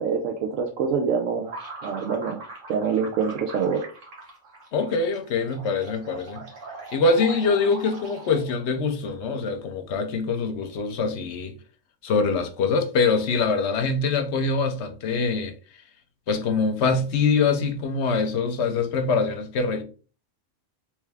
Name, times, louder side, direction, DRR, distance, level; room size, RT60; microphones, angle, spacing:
voice 1, 0.0-1.5 1.8-2.4 2.7-3.8, right 6 dB, 85° right, 1.0 m, -25 dB
sound 1, 1.4-8.7, right 3 dB, 65° right, 1.6 m, -41 dB
voice 2, 4.7-6.5 6.9-11.5 12.0-15.5 16.3-19.8, left 4 dB, 60° left, 0.9 m, -24 dB
3.4 x 3.2 x 3.3 m
omnidirectional pair, 1.4 m